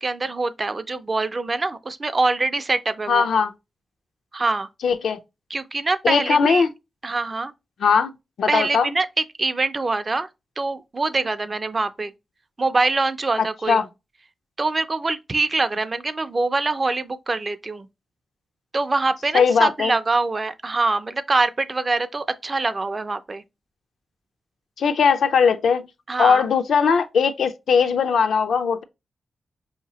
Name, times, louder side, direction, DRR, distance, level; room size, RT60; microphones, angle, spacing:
voice 1, 0.0-3.3 4.3-4.7 5.5-6.6 7.0-7.5 8.5-10.3 10.6-12.1 12.6-13.8 14.6-17.9 18.7-23.4 26.1-26.5, right 3 dB, 25° right, 0.3 m, -24 dB
voice 2, 3.1-3.5 4.8-5.2 6.0-6.7 7.8-8.1 8.4-8.9 13.7-13.9 19.3-19.9 24.8-25.9 26.2-28.8, left 6 dB, 90° left, 0.4 m, -19 dB
4.7 x 2.8 x 2.8 m
wide cardioid pair, 165°, 0 cm